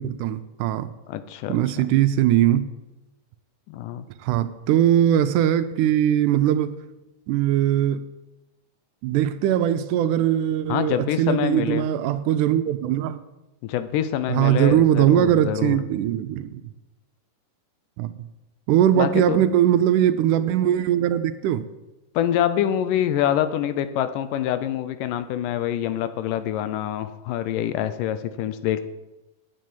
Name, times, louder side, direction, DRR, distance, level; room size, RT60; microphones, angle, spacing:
voice 1, 0.0-0.9 1.5-2.7 4.2-6.7 7.3-8.0 9.0-13.2 14.3-16.6 18.0-18.1 18.7-21.7, right 11 dB, 80° right, 2.0 m, -20 dB
voice 2, 1.1-1.9 3.7-4.1 10.7-11.9 13.6-15.8 19.0-19.4 22.2-28.8, left 11 dB, 85° left, 2.4 m, -25 dB
8.8 x 8.3 x 9.2 m
omnidirectional pair, 3.7 m